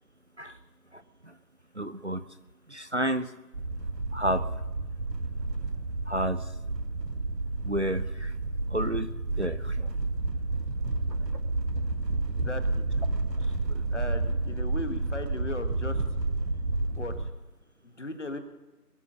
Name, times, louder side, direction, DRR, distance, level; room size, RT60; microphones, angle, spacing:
voice 1, 0.9-1.4 1.7-2.2 2.7-3.3 4.1-4.5 6.1-6.5 7.6-8.4 8.7-9.9 13.6-13.8, right 1 dB, 45° right, 12 dB, 0.6 m, -31 dB
sound 1, 3.5-17.3, right 2 dB, 85° right, 1.5 m, -30 dB
voice 2, 12.3-12.9 13.5-13.6 13.9-16.0 17.0-17.3 17.8-18.4, left 2 dB, 45° left, 9 dB, 1.6 m, -37 dB
22.0 x 8.3 x 6.5 m, 1.1 s
figure-of-eight pair, 165°, 48 cm